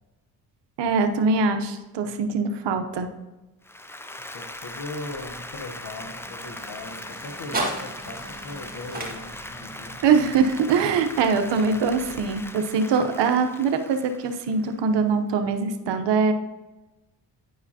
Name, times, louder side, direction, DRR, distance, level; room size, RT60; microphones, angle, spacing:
voice 1, 0.8-3.1 10.0-16.3, right 5 dB, 65° right, 8 dB, 0.9 m, -23 dB
Applause, 3.6-15.0, left 1 dB, 5° left, 0.4 m, -40 dB
voice 2, 4.3-10.0, left 2 dB, 50° left, 4 dB, 1.0 m, -39 dB
sound 1, 4.5-12.8, right 2 dB, 20° right, 1.8 m, -38 dB
10.0 x 4.8 x 2.8 m, 1.1 s
supercardioid pair, 65°, 46 cm